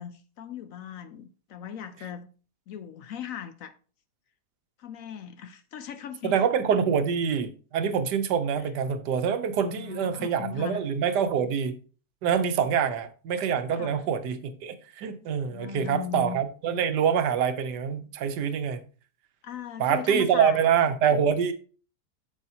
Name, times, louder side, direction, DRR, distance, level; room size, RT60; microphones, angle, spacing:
voice 1, 0.0-2.3 2.7-3.7 4.8-6.4 9.6-10.8 13.7-14.0 15.5-16.4 19.4-20.6, left 8 dB, 65° left, 0.9 m, -38 dB
voice 2, 6.2-11.8 12.2-18.8 19.8-21.5, right 7 dB, 85° right, 1.4 m, -25 dB
8.2 x 7.0 x 2.8 m
omnidirectional pair, 1.7 m